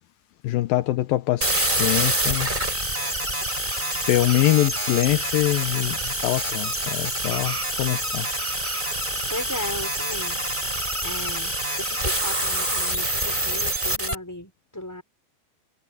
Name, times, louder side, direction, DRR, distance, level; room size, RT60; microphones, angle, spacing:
voice 1, 0.4-1.5 1.8-2.5 4.1-6.0 6.2-8.3, left 16 dB, 80° left, 2.5 m, -23 dB
sound 1, 1.4-14.1, right 1 dB, 10° right, 6.1 m, -26 dB
voice 2, 9.3-10.4 11.0-15.0, left 1 dB, 5° left, 5.9 m, -36 dB
open air
omnidirectional pair, 4.2 m